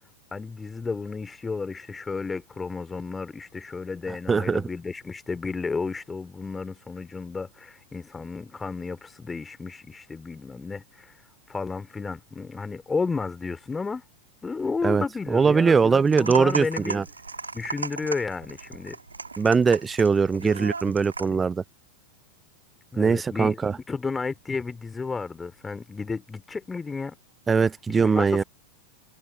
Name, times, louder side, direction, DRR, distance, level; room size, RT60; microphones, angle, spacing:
voice 1, 0.3-11.2 11.5-14.0 14.4-17.0 17.5-19.0 20.4-20.7 21.3-21.4 22.9-23.6 23.9-27.2 27.5-27.6 27.9-28.4, left 4 dB, 15° left, 2.9 m, -32 dB
voice 2, 4.3-4.6 14.8-17.0 19.4-21.6 23.0-23.7 27.5-28.4, right 5 dB, 15° right, 0.6 m, -21 dB
sound 1, 16.1-21.4, right 4 dB, 80° right, 6.1 m, -36 dB
figure-of-eight pair, 90°, 0 cm